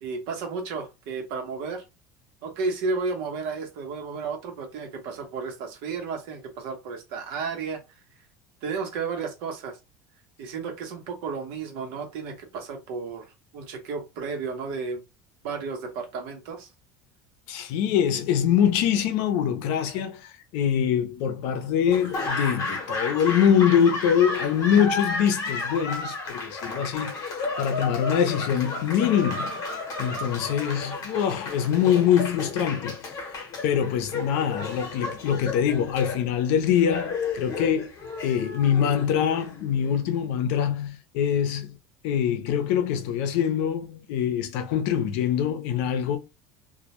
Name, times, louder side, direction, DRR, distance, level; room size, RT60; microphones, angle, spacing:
voice 1, 0.0-1.8 2.4-7.8 8.6-9.8 10.4-13.3 13.5-15.0 15.4-16.7, right 4 dB, 70° right, 0.8 m, -32 dB
voice 2, 17.5-29.6 30.0-33.1 33.6-37.9 38.2-41.8 42.0-46.2, left 8 dB, 70° left, 0.6 m, -24 dB
Laughter / Applause, 21.9-40.0, left 3 dB, 35° left, 0.8 m, -33 dB
2.2 x 2.1 x 2.9 m
cardioid pair, 155°, 9 cm